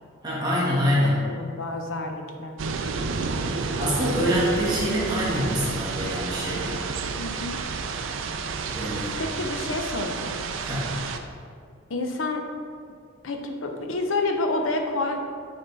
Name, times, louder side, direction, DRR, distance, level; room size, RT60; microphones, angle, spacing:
voice 1, 0.2-1.2 3.5-6.8 8.7-9.2 10.6-10.9, equal, 20° right, -7 dB, 1.5 m, -25 dB
voice 2, 1.2-2.5 7.2-7.6 9.2-10.4 11.9-12.4 13.2-15.2, left 2 dB, 75° left, 3 dB, 0.7 m, -29 dB
sound 1, 2.6-11.2, right 4 dB, 70° right, 0.4 m, -30 dB
8.8 x 3.6 x 4.0 m, 2.2 s
head